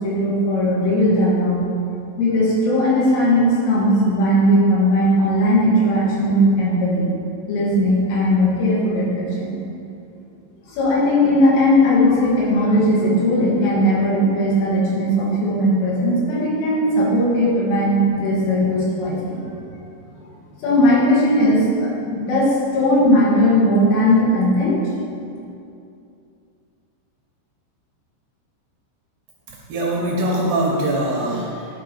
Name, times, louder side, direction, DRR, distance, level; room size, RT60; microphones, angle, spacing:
voice 1, 0.0-1.6 2.2-7.1 7.5-9.5 10.7-19.5 20.6-24.9, equal, 80° left, -6 dB, 4.5 m, -18 dB
voice 2, 29.5-31.7, right 1 dB, 80° right, -2 dB, 2.3 m, -22 dB
11.5 x 4.5 x 5.4 m, 2.6 s
omnidirectional pair, 5.6 m